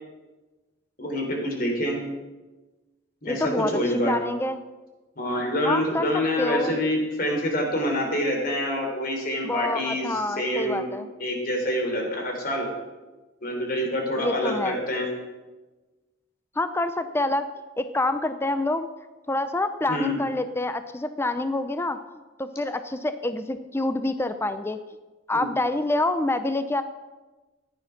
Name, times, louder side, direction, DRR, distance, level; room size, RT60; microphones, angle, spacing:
voice 1, 1.0-2.0 3.2-4.1 5.2-10.9 11.2-12.7 13.4-15.1 19.9-20.2 25.3-25.5, equal, 55° left, 1 dB, 3.6 m, -26 dB
voice 2, 3.3-4.6 5.6-6.8 9.4-11.1 14.2-14.8 16.6-17.5 17.8-18.9 19.3-22.0 22.4-24.8 25.3-26.8, left 2 dB, 15° left, 10 dB, 0.5 m, -27 dB
14.0 x 9.9 x 5.9 m, 1.2 s
head